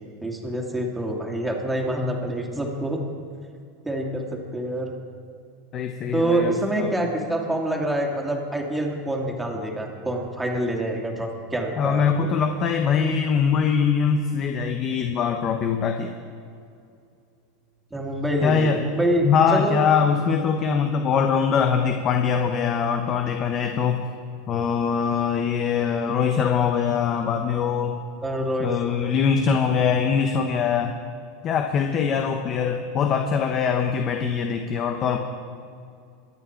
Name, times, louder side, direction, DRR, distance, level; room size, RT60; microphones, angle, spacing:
voice 1, 0.2-3.0 3.8-4.9 6.1-12.3 17.9-19.9 28.2-28.7 29.8-30.0, right 1 dB, 5° right, 1 dB, 2.4 m, -26 dB
voice 2, 5.7-6.9 11.8-16.1 18.4-18.8 19.2-24.1 24.5-28.0 28.6-31.0 31.4-35.2, left 6 dB, 35° left, 5 dB, 1.0 m, -22 dB
23.5 x 9.1 x 4.6 m, 2.4 s
supercardioid pair, 125°, 0 cm